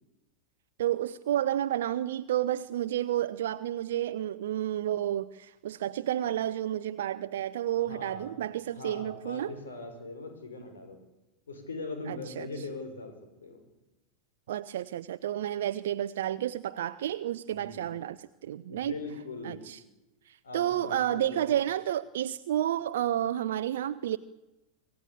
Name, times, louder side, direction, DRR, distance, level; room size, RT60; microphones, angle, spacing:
voice 1, 0.8-9.5 12.1-12.5 14.5-18.9 19.4-19.8 20.3-24.2, right 11 dB, 60° right, 12 dB, 0.7 m, -31 dB
voice 2, 7.8-8.4 8.7-11.0 11.5-13.1 13.4-13.6 17.5-17.8 18.7-19.6 20.4-21.5, left 3 dB, 65° left, 6 dB, 6.3 m, -41 dB
26.0 x 16.0 x 8.6 m, 1.0 s
figure-of-eight pair, 90°, 0 cm